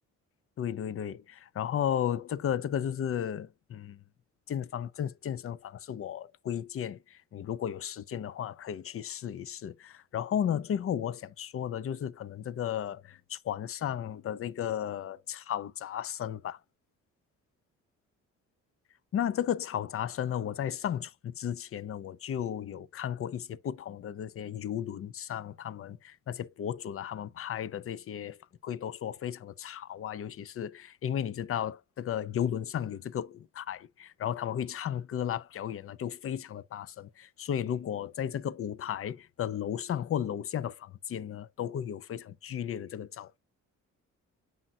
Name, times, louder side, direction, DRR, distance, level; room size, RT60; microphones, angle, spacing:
voice 1, 0.6-4.0 4.5-16.6 19.1-43.3, left 9 dB, 45° left, 0.6 m, -34 dB
7.6 x 5.5 x 2.3 m
cardioid pair, 90°, 30 cm